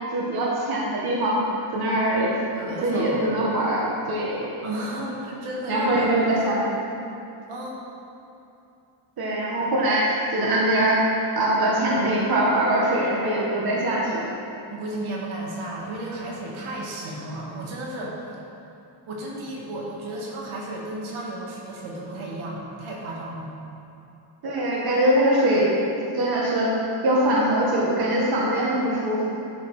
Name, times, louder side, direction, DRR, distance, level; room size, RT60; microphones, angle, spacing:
voice 1, 0.1-1.4 1.7-2.3 2.6-4.5 5.7-6.6 9.2-11.0 11.4-14.3 24.4-25.7 26.1-26.7 27.0-29.4, right 1 dB, 45° right, -4 dB, 1.7 m, -22 dB
voice 2, 2.5-3.3 4.6-6.4 7.5-7.8 14.7-18.2 19.1-23.5, right 1 dB, 75° right, -4 dB, 2.0 m, -33 dB
11.0 x 5.7 x 5.0 m, 2.7 s
cardioid pair, 120°, 49 cm